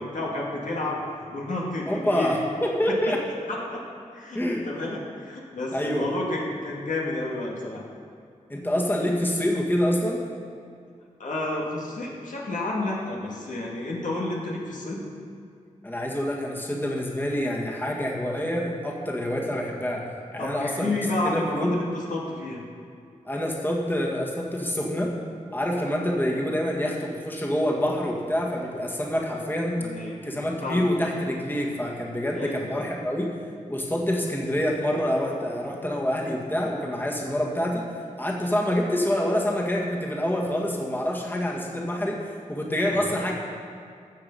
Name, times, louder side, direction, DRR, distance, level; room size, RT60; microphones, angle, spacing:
voice 1, 0.0-2.4 2.9-3.0 3.5-3.8 4.1-7.8 11.2-15.1 20.4-22.6 29.8-30.2 30.6-30.9 32.3-32.9 42.8-42.9, left 2 dB, 75° left, -3 dB, 2.2 m, -31 dB
voice 2, 1.9-3.2 4.3-4.7 5.7-6.1 8.5-10.2 15.8-20.0 20.3-21.0 21.2-21.8 23.3-25.1 25.5-29.8 30.2-33.3 33.7-37.8 38.2-43.3, equal, 15° left, -2 dB, 1.8 m, -26 dB
14.0 x 7.3 x 5.5 m, 2.3 s
wide cardioid pair, 70°, 13 cm